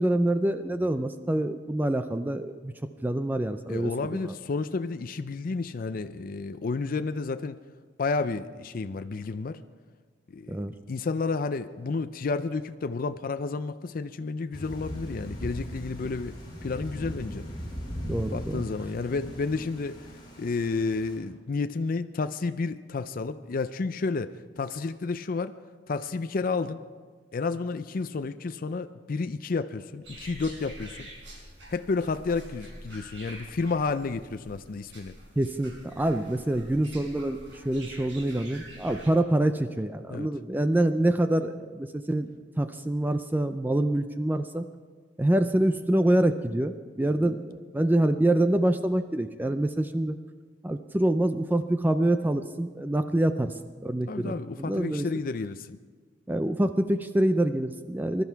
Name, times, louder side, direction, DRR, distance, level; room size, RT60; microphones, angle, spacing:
voice 1, 0.0-2.7 3.0-4.3 10.5-10.7 18.1-18.6 35.4-42.3 42.6-44.7 45.2-50.1 50.6-53.5 53.8-55.1 56.3-58.2, right 1 dB, 10° right, 9 dB, 0.4 m, -26 dB
voice 2, 3.7-7.6 8.0-9.6 10.3-10.6 10.9-16.3 16.6-17.5 18.3-20.0 20.4-25.5 25.9-26.8 27.3-31.1 31.7-35.1 40.1-40.3 47.2-47.3 54.1-55.8, left 4 dB, 50° left, 10 dB, 0.4 m, -31 dB
Thunder / Rain, 14.5-21.2, equal, 25° left, 3.7 m, -38 dB
sound 1, 30.0-39.1, right 1 dB, 80° right, 5.8 m, -46 dB
21.0 x 12.0 x 4.6 m, 1.5 s
head